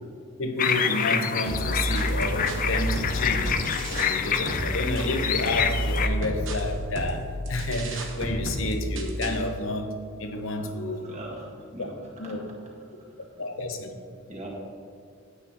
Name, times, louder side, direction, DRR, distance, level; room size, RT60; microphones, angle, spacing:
voice 1, 0.4-3.5 3.9-11.1 11.8-11.9 12.2-12.5 13.4-13.9, left 2 dB, 70° left, 6 dB, 0.8 m, -30 dB
sound 1, 0.6-6.1, left 7 dB, 40° left, 0.4 m, -27 dB
sound 2, 1.5-4.2 4.5-9.5, right 1 dB, 65° right, 1.0 m, -30 dB
voice 2, 11.0-12.0 14.3-14.5, right 1 dB, 35° right, -3 dB, 1.8 m, -40 dB
9.5 x 8.5 x 2.9 m, 2.3 s
head